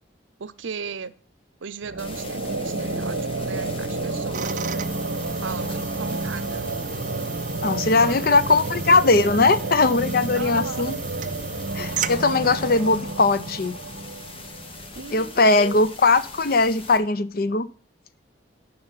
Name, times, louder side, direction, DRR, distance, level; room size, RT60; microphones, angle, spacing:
voice 1, 0.4-1.1 1.6-4.9 5.3-6.7 7.8-9.5 10.4-10.8 15.0-15.8, right 5 dB, 85° right, 15 dB, 0.6 m, -37 dB
sound 1, 1.8-15.0, right 2 dB, 70° right, 1.2 m, -30 dB
sound 2, 2.0-17.0, left 3 dB, 30° left, 1.1 m, -41 dB
sound 3, 4.3-13.0, right 8 dB, 40° right, 0.5 m, -36 dB
voice 2, 7.6-11.0 11.7-13.8 15.1-17.7, left 3 dB, 50° left, 14 dB, 0.6 m, -20 dB
8.8 x 5.5 x 5.7 m, 0.41 s
head